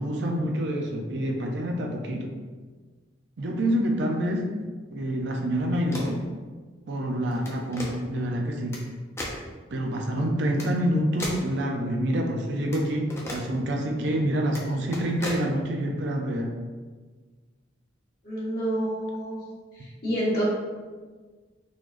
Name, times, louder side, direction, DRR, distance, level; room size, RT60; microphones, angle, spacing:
voice 1, 0.0-2.3 3.4-4.5 4.9-6.2 6.9-8.8 9.7-16.5, equal, 60° right, 1 dB, 0.5 m, -27 dB
sound 1, 5.7-6.2 7.3-7.9 8.7-8.8 9.2-9.4 10.6-10.7 11.2-11.5 12.7-12.8 13.1-13.4 14.5-14.6 14.9-15.4, left 1 dB, 15° left, 0.5 m, -35 dB
voice 2, 18.2-19.4 19.7-20.4, right 1 dB, 50° left, -8 dB, 1.4 m, -28 dB
3.9 x 3.0 x 2.4 m, 1.4 s
head